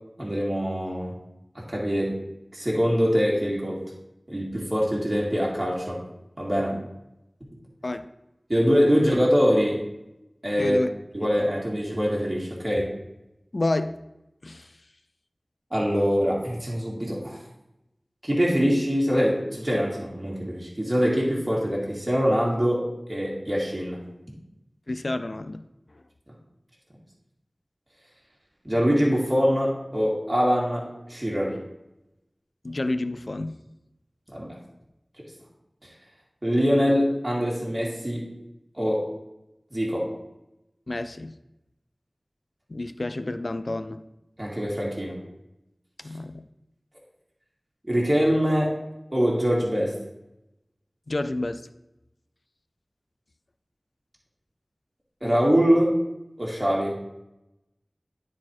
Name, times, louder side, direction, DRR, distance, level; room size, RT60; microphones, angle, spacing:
voice 1, 0.2-1.1 1.6-2.2 2.5-3.8 4.3-6.0 6.4-6.8 8.5-9.8 10.4-10.8 11.1-12.9 15.7-17.4 18.2-24.0 28.6-31.6 34.3-34.5 36.4-38.3 38.8-39.0 39.7-40.1 44.4-45.2 47.9-48.7 49.1-49.9 55.2-56.0 56.4-57.0, equal, 30° right, -4 dB, 2.2 m, -23 dB
voice 2, 10.6-10.9 13.5-14.0 14.4-14.7 24.9-25.6 25.9-26.0 32.6-33.6 40.9-41.4 42.7-44.0 46.0-46.4 51.1-51.6, left 2 dB, 60° left, 10 dB, 0.4 m, -29 dB
9.7 x 4.3 x 4.5 m, 0.90 s
wide cardioid pair, 50°, 0 cm